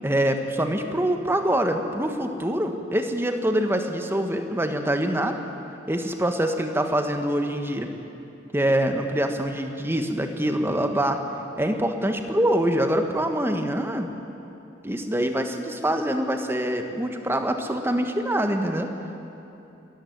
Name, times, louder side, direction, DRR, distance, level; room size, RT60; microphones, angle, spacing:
voice 1, 0.0-5.4 5.9-7.9 8.5-11.2 11.6-14.1 14.8-18.9, right 1 dB, 10° right, 5 dB, 1.3 m, -25 dB
21.0 x 14.0 x 9.3 m, 2.9 s
head